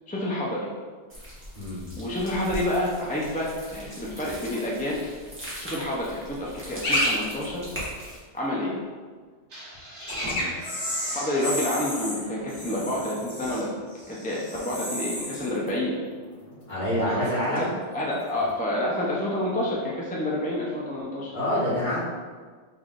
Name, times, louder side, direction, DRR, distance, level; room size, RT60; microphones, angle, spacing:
voice 1, 0.1-0.7 2.0-5.0 5.6-7.6 8.3-8.7 11.1-13.7 14.1-16.0 17.0-17.7 17.9-21.3, left 1 dB, 10° left, -5 dB, 0.5 m, -28 dB
sound 1, 1.1-8.2, equal, 10° right, 1.3 m, -40 dB
sound 2, 6.8-7.1 7.4-7.5 10.0-16.9 17.1-17.6 18.3-18.5, left 1 dB, 85° left, 1.7 m, -32 dB
sound 3, 9.5-13.2, right 1 dB, 90° right, 1.4 m, -42 dB
voice 2, 16.7-17.8 21.3-22.0, equal, 45° left, -10 dB, 1.8 m, -27 dB
6.0 x 3.5 x 2.5 m, 1.5 s
omnidirectional pair, 1.2 m